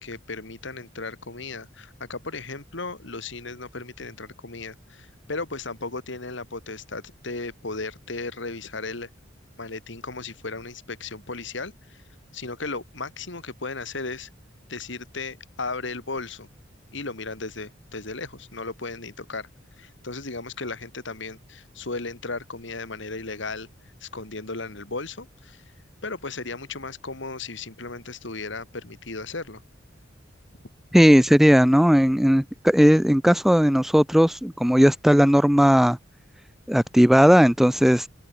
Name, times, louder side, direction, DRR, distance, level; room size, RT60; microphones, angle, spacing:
voice 1, 0.0-9.1 9.6-12.0 12.3-14.3 14.7-16.5 16.9-19.5 19.8-23.7 24.0-25.6 26.0-29.6, left 3 dB, 70° left, 2.7 m, -35 dB
voice 2, 30.9-36.0 36.7-38.1, equal, ahead, 0.4 m, -17 dB
head